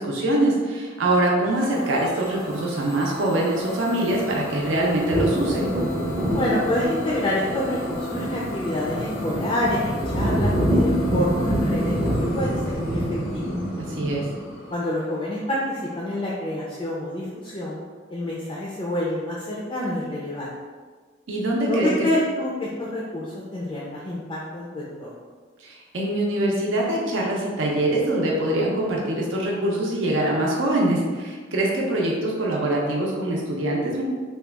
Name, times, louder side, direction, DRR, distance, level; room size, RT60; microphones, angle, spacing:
voice 1, 0.0-5.7 13.8-14.3 21.3-22.1 25.6-34.0, right 1 dB, 80° right, -3 dB, 0.6 m, -23 dB
Idling / Domestic sounds home sounds, 1.4-17.0, left 2 dB, 85° left, 0.5 m, -39 dB
sound 1, 4.1-14.5, equal, 35° right, 0.6 m, -26 dB
voice 2, 6.3-13.0 13.3-13.5 14.7-17.8 18.1-20.6 21.7-25.1, left 1 dB, 25° left, -5 dB, 0.3 m, -27 dB
2.9 x 2.2 x 3.4 m, 1.5 s
head